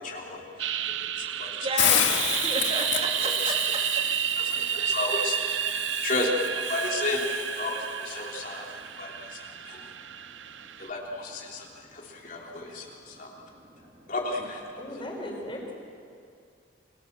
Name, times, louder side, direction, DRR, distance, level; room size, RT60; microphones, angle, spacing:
voice 1, 0.0-1.7 2.1-2.2 3.4-3.5 4.3-5.7 6.0-9.9 10.8-13.3 14.1-14.6, left 2 dB, 45° left, -2 dB, 3.6 m, -33 dB
sound 1, 0.6-10.9, right 10 dB, 80° right, 0.7 m, -31 dB
voice 2, 0.8-4.3 9.2-9.3 9.8-10.5 12.1-14.0, right 2 dB, 35° right, 1 dB, 2.5 m, -36 dB
Hiss, 1.8-7.8, left 10 dB, 80° left, 1.9 m, -30 dB
voice 3, 14.8-15.7, left 1 dB, 25° left, 0 dB, 5.8 m, -37 dB
30.0 x 23.5 x 7.6 m, 2.4 s
head